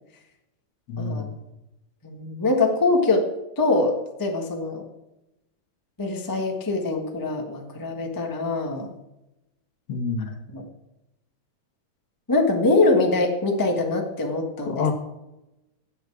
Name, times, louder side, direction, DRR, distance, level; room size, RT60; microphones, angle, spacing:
voice 1, 0.9-1.3 9.9-10.4 14.7-14.9, left 5 dB, 60° left, 5 dB, 2.1 m, -27 dB
voice 2, 2.0-3.3 3.6-4.8 6.0-8.9 10.5-10.7 12.3-14.9, left 3 dB, 35° left, 2 dB, 0.3 m, -23 dB
14.5 x 8.3 x 4.8 m, 0.94 s
omnidirectional pair, 3.3 m